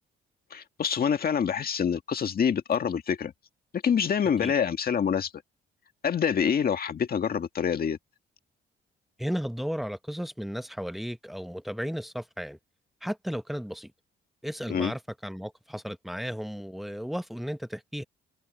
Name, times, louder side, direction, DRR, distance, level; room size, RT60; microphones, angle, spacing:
voice 1, 0.5-3.3 3.7-5.3 6.0-8.0 14.7-14.9, left 7 dB, 50° left, 1.9 m, -26 dB
voice 2, 9.2-12.6 13.0-13.9 14.4-18.0, equal, ahead, 1.1 m, -34 dB
cardioid pair, 90°, 20 cm